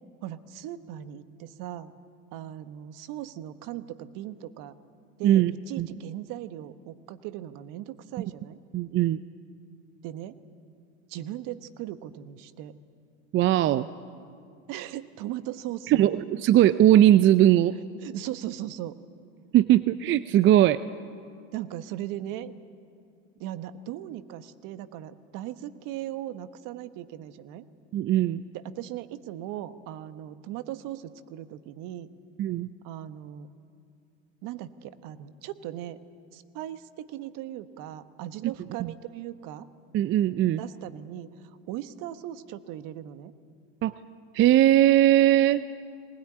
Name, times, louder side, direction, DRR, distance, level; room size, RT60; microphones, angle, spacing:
voice 1, 0.2-1.9 2.3-4.7 5.2-8.6 10.0-10.4 11.1-12.7 14.7-16.1 18.0-18.9 21.5-22.5 23.4-27.6 28.5-32.1 32.8-33.5 34.4-36.0 36.3-39.7 40.6-43.3, right 12 dB, 50° right, 13 dB, 1.2 m, -38 dB
voice 2, 8.7-9.2 13.3-13.9 15.9-17.7 19.5-20.8 27.9-28.4 32.4-32.7 38.4-38.5 38.8-38.9 39.9-40.6 43.8-43.9 44.3-45.6, right 12 dB, 30° right, 15 dB, 0.5 m, -20 dB
20.5 x 20.0 x 9.9 m, 2.4 s
hypercardioid pair, 105°, 40 cm